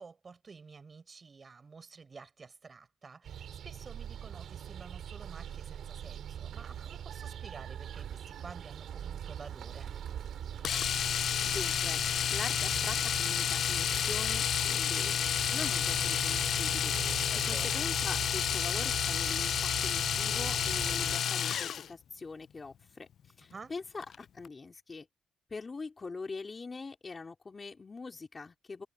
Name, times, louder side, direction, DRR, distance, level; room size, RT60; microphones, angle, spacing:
voice 1, 0.0-9.9 17.3-17.8 23.5-23.7, right 4 dB, 35° right, 6.5 m, -51 dB
sound 1, 3.2-21.2, right 9 dB, 70° right, 3.6 m, -42 dB
Domestic sounds home sounds, 10.6-21.9 24.0-24.2 24.4-24.5, left 9 dB, 65° left, 0.4 m, -30 dB
voice 2, 11.4-12.0 12.3-15.2 15.5-16.9 17.4-23.1 23.4-25.1 25.5-28.9, left 4 dB, 30° left, 3.9 m, -43 dB
cardioid pair, 90°, 0 cm